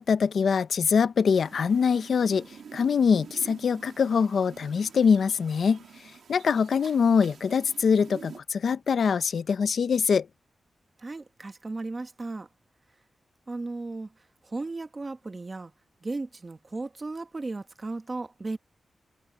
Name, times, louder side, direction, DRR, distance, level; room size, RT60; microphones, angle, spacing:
voice 1, 0.0-5.8 6.3-10.3, left 6 dB, 65° left, 0.6 m, -23 dB
sound 1, 1.3-8.4, right 6 dB, 85° right, 1.8 m, -48 dB
voice 2, 11.0-12.5 13.5-14.1 14.4-15.7 16.0-18.6, right 3 dB, 25° right, 1.2 m, -35 dB
wide cardioid pair, 180°, 0 cm